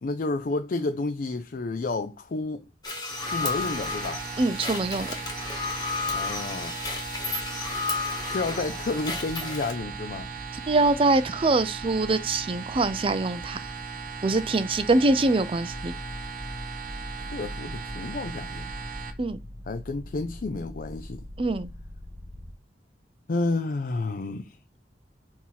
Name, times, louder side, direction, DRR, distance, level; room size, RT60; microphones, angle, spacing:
voice 1, 0.0-2.7 3.2-4.2 6.1-6.8 8.2-10.3 17.2-18.7 19.7-21.2 23.3-24.6, left 3 dB, 50° left, 0.4 m, -30 dB
sound 1, 2.8-9.7, left 3 dB, 20° left, 1.3 m, -32 dB
sound 2, 3.1-19.1, right 4 dB, 50° right, 1.1 m, -38 dB
voice 2, 4.4-5.2 10.7-13.6 14.2-15.9 19.2-19.4 21.4-21.7, right 2 dB, 30° right, 0.5 m, -24 dB
sound 3, 15.7-22.5, left 1 dB, 75° right, 2.0 m, -42 dB
6.3 x 2.9 x 5.6 m
head